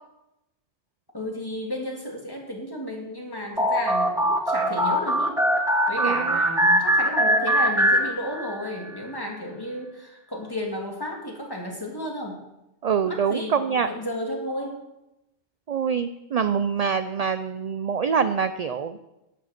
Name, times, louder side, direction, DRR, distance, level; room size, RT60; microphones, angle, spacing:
voice 1, 1.1-5.4 5.9-12.4 13.0-14.8, left 1 dB, 20° left, -1 dB, 2.6 m, -33 dB
sound 1, 3.6-8.7, equal, 5° right, 1.1 m, -22 dB
voice 2, 6.0-6.4 12.8-13.9 15.7-19.0, right 6 dB, 55° right, 11 dB, 0.4 m, -25 dB
11.5 x 9.2 x 5.9 m, 0.92 s
omnidirectional pair, 1.2 m